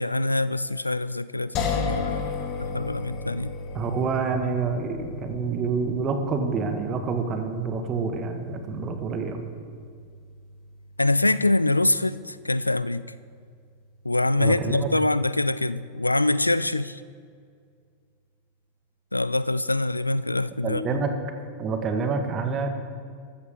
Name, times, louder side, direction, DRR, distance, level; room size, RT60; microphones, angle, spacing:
voice 1, 0.0-2.2 2.6-3.5 11.0-13.1 14.0-17.0 19.1-21.0, left 2 dB, 85° left, 16 dB, 0.3 m, -24 dB
sound 1, 1.5-14.6, left 4 dB, 40° left, 1.6 m, -36 dB
voice 2, 3.7-9.4 14.4-14.9 20.6-21.1 21.6-22.7, right 5 dB, 30° right, 6 dB, 1.5 m, -27 dB
14.5 x 13.5 x 3.6 m, 2.1 s
figure-of-eight pair, 90°, 0 cm